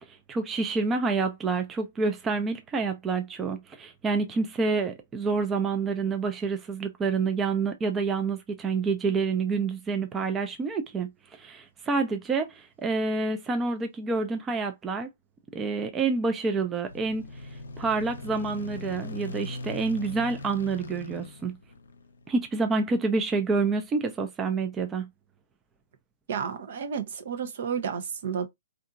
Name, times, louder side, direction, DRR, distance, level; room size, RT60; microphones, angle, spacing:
voice 1, 0.1-15.1 15.5-17.3 17.8-21.6 22.3-25.1, right 4 dB, 20° right, 0.5 m, -28 dB
sound 1, 16.9-22.3, left 2 dB, 85° left, 0.6 m, -40 dB
voice 2, 26.3-28.5, right 7 dB, 60° right, 0.7 m, -31 dB
2.7 x 2.5 x 2.3 m
hypercardioid pair, 130°, 0 cm